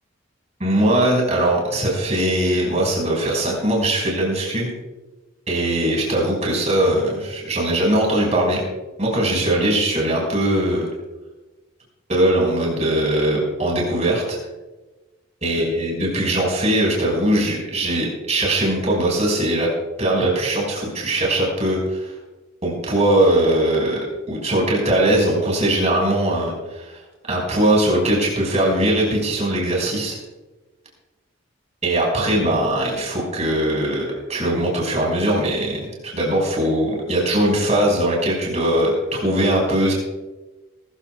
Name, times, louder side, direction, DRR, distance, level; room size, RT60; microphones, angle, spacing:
voice 1, 0.6-4.7 5.5-8.6 9.0-10.9 12.1-14.4 15.4-19.7 20.0-22.1 22.6-24.0 24.3-27.0 27.3-30.2 31.8-39.9, right 1 dB, 35° right, -2 dB, 5.4 m, -20 dB
21.5 x 14.5 x 2.4 m, 1.1 s
head